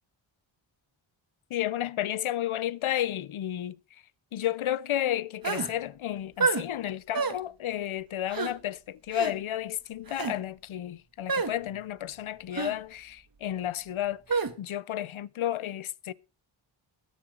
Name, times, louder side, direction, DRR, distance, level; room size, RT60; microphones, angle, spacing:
voice 1, 1.5-3.8 4.3-16.1, left 12 dB, 85° left, 0.7 m, -32 dB
sound 1, 5.4-5.7 6.4-6.6 7.1-7.4 8.3-8.5 9.1-9.3 10.1-10.3 11.3-11.5 12.5-12.7 14.3-14.5, right 5 dB, 45° right, 1.4 m, -28 dB
21.5 x 7.2 x 3.8 m
wide cardioid pair, 65°, 48 cm